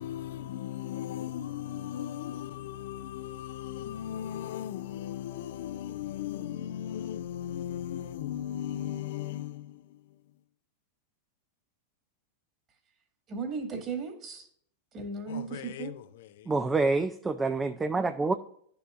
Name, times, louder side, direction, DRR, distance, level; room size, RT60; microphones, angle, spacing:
voice 1, 0.0-10.0 15.3-16.5, left 11 dB, 70° left, 0.5 m, -37 dB
voice 2, 13.3-14.5 14.9-15.9, right 4 dB, 35° right, 2.0 m, -36 dB
voice 3, 16.5-18.3, right 3 dB, 15° right, 0.4 m, -27 dB
10.5 x 6.9 x 2.5 m
hypercardioid pair, 125°, 0 cm